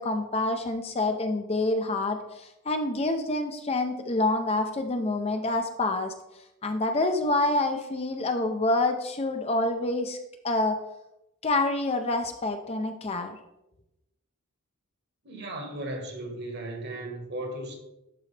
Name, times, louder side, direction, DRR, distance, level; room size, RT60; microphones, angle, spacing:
voice 1, 0.0-6.1 6.6-10.2 10.4-10.8 11.4-13.4, left 2 dB, 30° left, 6 dB, 0.5 m, -27 dB
voice 2, 15.2-17.8, right 1 dB, 50° right, 3 dB, 1.5 m, -36 dB
11.5 x 4.0 x 3.3 m, 0.90 s
head